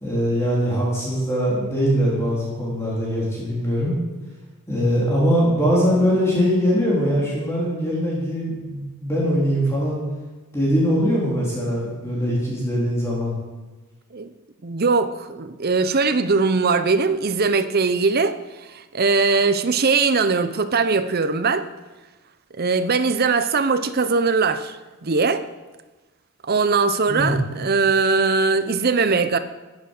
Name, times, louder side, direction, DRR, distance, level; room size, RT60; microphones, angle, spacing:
voice 1, 0.0-3.9 4.7-10.0 10.5-13.4 27.1-27.4, equal, 15° left, -6 dB, 3.6 m, -22 dB
voice 2, 14.6-18.4 18.7-21.7 22.6-25.5 26.4-29.4, right 4 dB, 45° right, 11 dB, 0.7 m, -20 dB
14.0 x 9.5 x 6.5 m, 1.2 s
head